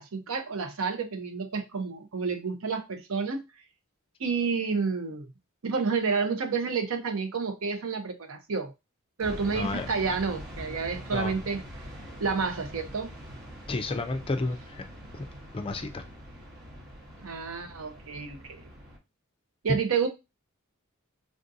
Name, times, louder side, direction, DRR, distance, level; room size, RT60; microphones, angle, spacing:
voice 1, 0.0-3.4 4.2-5.3 5.6-8.7 9.2-11.6 12.2-13.1 17.2-18.4 19.6-20.1, right 5 dB, 75° right, 0.6 m, -30 dB
sound 1, 9.2-19.0, equal, 50° right, 1.1 m, -44 dB
voice 2, 9.5-9.9 11.1-11.3 13.7-14.8 15.1-15.2 15.5-16.1, left 3 dB, 25° left, 0.4 m, -31 dB
3.5 x 2.5 x 2.6 m
head